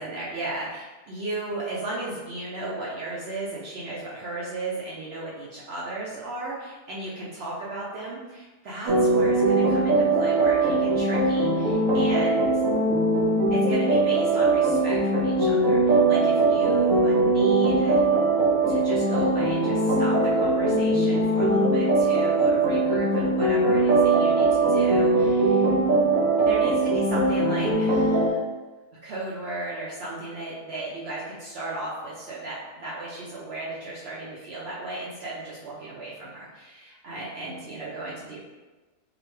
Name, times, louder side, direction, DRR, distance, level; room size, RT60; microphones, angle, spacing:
voice 1, 0.0-12.6 13.5-18.0 18.7-25.7 26.5-28.4 29.0-38.4, right 2 dB, 85° right, -6 dB, 0.5 m, -35 dB
sound 1, 8.9-28.3, right 2 dB, 65° right, 1.0 m, -21 dB
5.0 x 2.1 x 3.1 m, 1.2 s
omnidirectional pair, 1.8 m